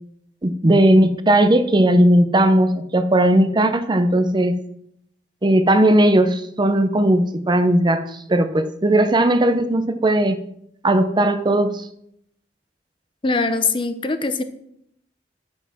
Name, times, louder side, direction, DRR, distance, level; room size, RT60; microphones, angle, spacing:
voice 1, 0.4-4.5 5.4-10.4 10.8-11.9, right 1 dB, 25° right, 10 dB, 0.6 m, -17 dB
voice 2, 13.2-14.4, left 3 dB, 30° left, 10 dB, 0.7 m, -22 dB
9.5 x 5.9 x 5.8 m, 0.72 s
head